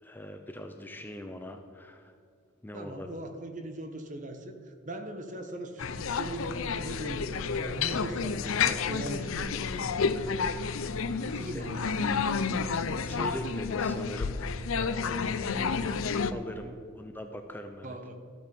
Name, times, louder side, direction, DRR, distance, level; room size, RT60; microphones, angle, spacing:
voice 1, 0.0-2.2 2.6-3.1 11.5-11.6 13.0-14.4 14.7-15.8 16.3-18.0, equal, 10° left, 5 dB, 0.5 m, -41 dB
voice 2, 2.7-10.3 11.2-12.4 17.8-18.1, right 1 dB, 35° right, 6 dB, 1.1 m, -40 dB
sound 1, 5.8-16.3, left 5 dB, 80° left, 0.6 m, -30 dB
13.5 x 8.5 x 5.3 m, 2.4 s
head